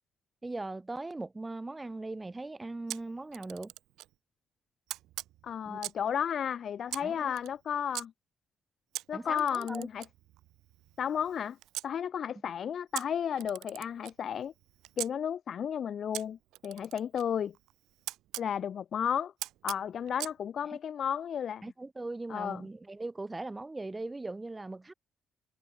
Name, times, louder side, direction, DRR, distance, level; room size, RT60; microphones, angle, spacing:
voice 1, 0.4-3.7 5.6-5.8 7.0-7.3 9.1-9.9 20.7-20.8 21.6-24.9, right 2 dB, 20° right, 3.1 m, -39 dB
Camera, 2.9-4.1 4.9-6.1 6.9-8.0 8.9-11.9 12.9-15.1 16.1-18.5 19.4-20.4, right 15 dB, 90° right, 1.7 m, -42 dB
voice 2, 5.4-8.1 9.1-10.0 11.0-11.6 11.8-14.5 15.0-16.4 16.6-17.5 18.4-19.3 19.6-21.6 22.3-22.6, left 8 dB, 60° left, 0.5 m, -33 dB
cardioid pair, 90°, 0 cm